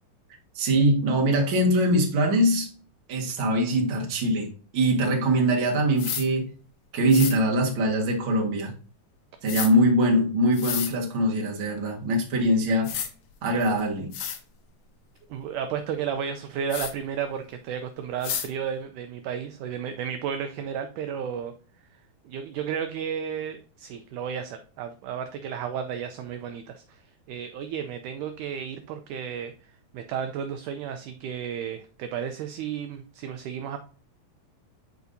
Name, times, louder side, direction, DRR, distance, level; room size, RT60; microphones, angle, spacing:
voice 1, 0.6-2.7 3.1-6.5 6.9-8.7 9.4-12.9 13.4-14.1, right 1 dB, 45° right, 0 dB, 1.9 m, -22 dB
sound 1, 6.0-6.3 7.1-7.4 9.5-9.7 10.5-10.9 12.4-12.5 12.8-13.1 13.7-13.8 14.1-14.4 16.7-16.9 18.2-18.5, left 8 dB, 85° left, 1.3 m, -30 dB
voice 2, 15.3-21.5 22.3-33.8, right 8 dB, 80° right, 7 dB, 1.9 m, -33 dB
9.4 x 4.6 x 2.7 m, 0.40 s
omnidirectional pair, 4.1 m